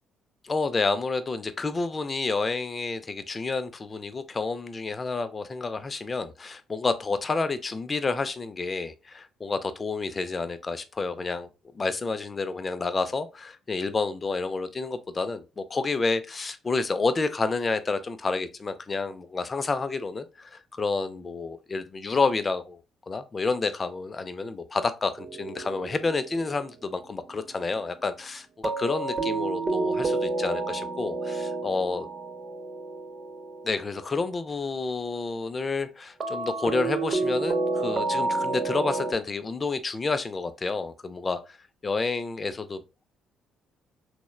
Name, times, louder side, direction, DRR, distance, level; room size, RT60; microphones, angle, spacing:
voice 1, 0.4-11.5 11.7-22.8 23.1-32.1 33.6-41.6 41.8-42.8, left 3 dB, 35° left, 0.4 m, -29 dB
sound 1, 25.2-26.6 28.6-34.3 36.2-39.1, right 3 dB, 40° right, 0.5 m, -30 dB
3.0 x 2.1 x 2.2 m
hypercardioid pair, 55°, 0 cm